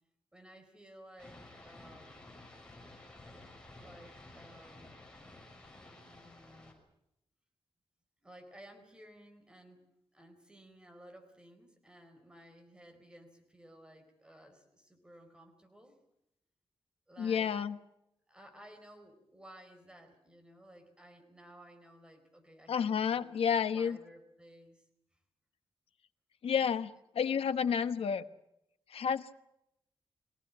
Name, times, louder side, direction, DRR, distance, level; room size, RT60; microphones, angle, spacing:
voice 1, 0.3-2.3 3.7-5.0 5.9-6.8 8.2-9.8 10.1-16.0 17.1-17.5 18.3-24.8, right 1 dB, 10° right, 4 dB, 4.5 m, -56 dB
sound 1, 1.2-6.7, left 2 dB, 10° left, 6.0 m, -53 dB
voice 2, 17.2-17.8 22.7-24.0 26.4-28.2 28.9-29.3, left 7 dB, 90° left, 10 dB, 1.1 m, -30 dB
24.0 x 17.5 x 9.7 m, 0.81 s
wide cardioid pair, 165°, 10 cm